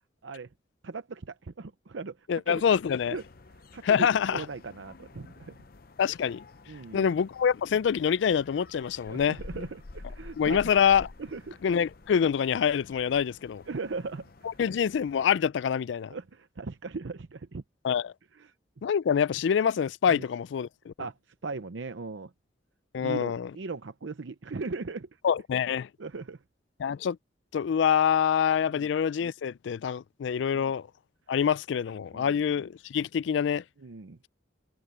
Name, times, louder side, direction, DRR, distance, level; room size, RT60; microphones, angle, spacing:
voice 1, 0.8-2.6 3.1-3.2 3.7-5.6 6.7-7.1 9.1-10.6 11.2-11.6 13.7-14.3 16.1-17.6 18.3-18.5 20.1-20.2 21.0-22.3 23.0-25.2 26.0-26.4 28.7-28.9 30.5-30.6 32.1-32.4 33.8-34.2, right 4 dB, 85° right, 0.7 m, -38 dB
voice 2, 2.3-3.2 3.8-4.5 6.0-6.4 6.9-9.4 10.4-11.1 11.6-13.6 14.6-16.1 17.8-18.1 18.8-20.9 22.9-23.5 25.2-25.9 26.8-27.2 27.5-30.9 31.3-33.6, left 7 dB, 75° left, 0.3 m, -26 dB
sound 1, 2.5-15.2, left 2 dB, 50° left, 0.7 m, -50 dB
head